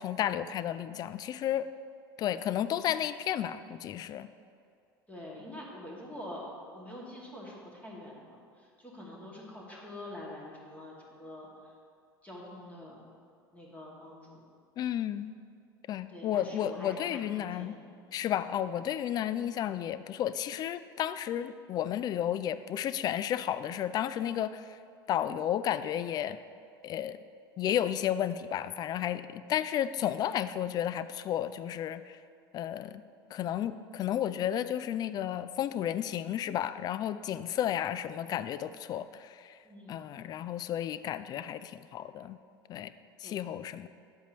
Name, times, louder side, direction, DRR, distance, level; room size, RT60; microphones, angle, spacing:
voice 1, 0.0-1.7 2.2-4.3 14.8-15.3 15.9-17.8 18.1-24.6 25.1-26.4 26.8-27.2 27.6-32.2 32.5-33.0 33.3-39.5 39.9-42.4 42.7-42.9 43.2-43.9, left 10 dB, 30° left, 14 dB, 0.3 m, -32 dB
voice 2, 5.1-11.5 12.2-13.0 13.5-14.4 16.1-17.8 18.1-18.3 39.6-40.3 43.2-43.4, left 1 dB, 10° left, -4 dB, 2.2 m, -46 dB
10.5 x 8.1 x 3.0 m, 2.3 s
figure-of-eight pair, 75°, 12 cm